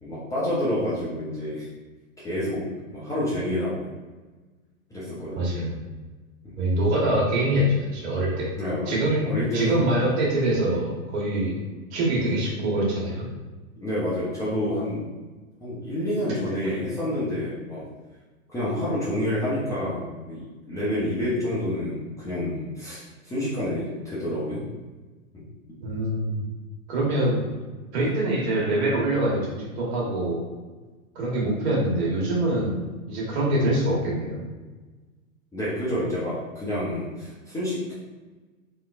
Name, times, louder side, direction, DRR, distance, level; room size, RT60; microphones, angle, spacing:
voice 1, 0.0-1.7 2.2-3.9 4.9-5.5 6.4-6.5 8.6-9.9 13.8-15.1 15.6-17.8 18.5-24.6 25.3-25.4 35.5-37.9, left 1 dB, 10° left, -11 dB, 0.6 m, -28 dB
voice 2, 5.3-5.8 6.6-8.5 8.9-11.6 11.9-13.3 16.6-16.7 25.8-26.4 26.9-27.5 27.9-30.4 31.1-34.4, right 1 dB, 50° right, -4 dB, 1.3 m, -24 dB
3.1 x 2.8 x 2.4 m, 1.3 s
hypercardioid pair, 110°, 42 cm